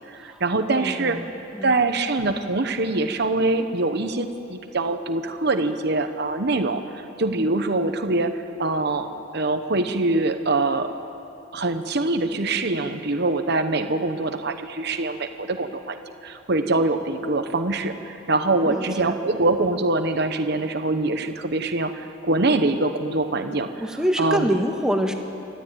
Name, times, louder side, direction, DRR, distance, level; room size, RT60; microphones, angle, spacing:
voice 1, 0.1-1.2 1.6-10.9 11.5-16.0 16.2-23.7 24.2-24.5, right 2 dB, 55° right, 7 dB, 1.1 m, -24 dB
voice 2, 0.7-1.8 18.6-19.1 23.8-25.1, equal, 5° right, 3 dB, 1.5 m, -26 dB
28.0 x 12.5 x 9.0 m, 2.8 s
head